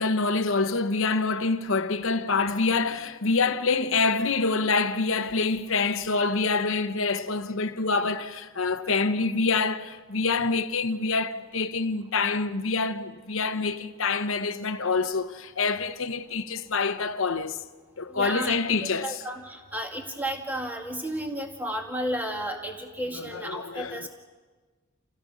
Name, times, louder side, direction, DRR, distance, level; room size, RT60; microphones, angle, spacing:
voice 1, 0.0-17.6 18.0-19.2 23.1-24.1, left 4 dB, 65° left, 1.0 m, -26 dB
voice 2, 18.1-24.1, right 1 dB, 10° right, 2.1 m, -33 dB
29.0 x 16.0 x 6.4 m
head